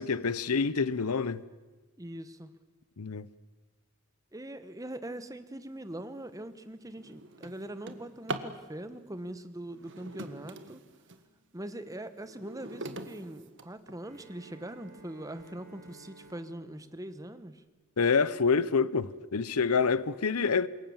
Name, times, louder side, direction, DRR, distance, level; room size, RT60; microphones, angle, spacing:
voice 1, 0.0-1.4 3.0-3.3 18.0-20.7, left 5 dB, 90° left, 0.8 m, -27 dB
voice 2, 2.0-2.5 4.3-10.8 11.5-17.6, right 1 dB, 15° right, 1.1 m, -42 dB
Drawer open or close, 5.9-6.1 6.6-8.6 9.7-11.3 11.8-14.2 14.9-15.0 15.5-15.6 15.9-16.3, right 2 dB, 55° right, 1.6 m, -42 dB
Bowed string instrument, 14.0-18.3, right 2 dB, 40° right, 4.7 m, -56 dB
27.0 x 22.0 x 7.3 m
head